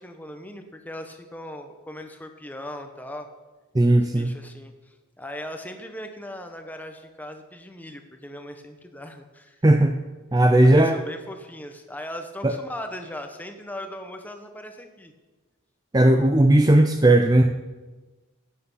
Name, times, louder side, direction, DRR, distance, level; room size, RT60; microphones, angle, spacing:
voice 1, 0.0-3.3 4.0-9.6 10.6-15.1, left 1 dB, 10° left, 6 dB, 1.0 m, -39 dB
voice 2, 3.7-4.3 9.6-9.9 10.3-11.0 12.4-12.5 15.9-17.5, right 1 dB, 20° right, 6 dB, 0.5 m, -17 dB
15.5 x 8.6 x 5.6 m, 1.2 s
head